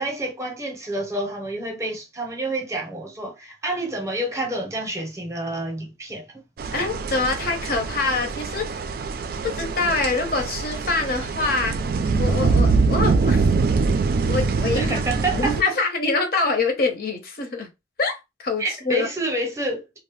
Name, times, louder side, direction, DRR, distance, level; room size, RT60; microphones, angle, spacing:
voice 1, 0.0-6.2 14.8-15.7 18.6-19.8, right 1 dB, 15° right, 0.7 m, -28 dB
sound 1, 6.6-15.6, right 4 dB, 55° right, 0.3 m, -23 dB
voice 2, 6.7-8.9 9.4-11.7 12.2-13.8 14.3-17.7 18.0-19.1, left 3 dB, 55° left, 0.8 m, -25 dB
2.6 x 2.0 x 3.0 m
head